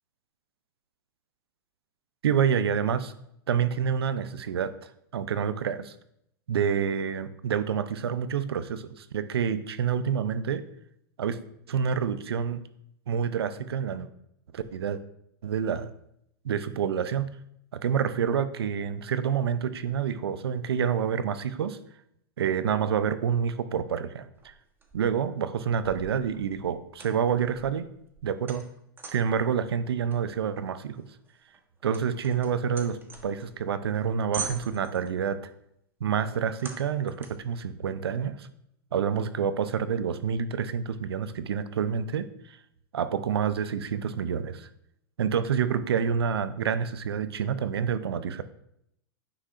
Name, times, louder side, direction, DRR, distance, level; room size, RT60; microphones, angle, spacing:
voice 1, 2.2-3.1 3.5-4.7 5.1-5.9 6.5-10.6 11.2-11.4 11.7-12.6 13.1-14.1 14.5-15.0 15.4-15.9 16.4-17.3 17.7-21.8 22.4-24.5 24.9-27.9 28.2-28.7 29.1-31.1 31.8-35.4 36.0-38.5 38.9-42.6 42.9-44.7 45.2-48.4, right 7 dB, 85° right, 13 dB, 0.6 m, -28 dB
sound 1, 24.4-25.3 25.7-29.4 30.1-33.6 34.0-34.1 34.3-35.2 36.6-37.5, right 5 dB, 15° right, 1.1 m, -42 dB
9.6 x 5.8 x 2.5 m, 0.76 s
hypercardioid pair, 110°, 13 cm